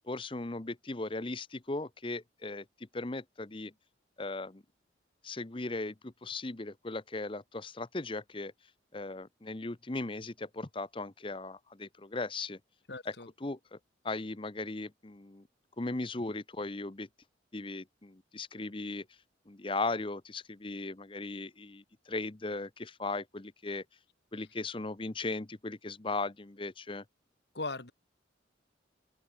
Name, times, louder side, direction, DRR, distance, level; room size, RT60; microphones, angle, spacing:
voice 1, 0.1-2.6 2.9-3.7 4.2-4.6 5.2-8.5 8.9-12.6 13.0-13.1 13.4-13.8 14.0-15.4 15.8-17.1 17.5-19.1 19.5-23.8 24.3-27.0, left 2 dB, 25° left, 0.9 m, -37 dB
voice 2, 12.9-13.3 27.5-27.9, left 3 dB, 60° left, 2.1 m, -38 dB
open air
head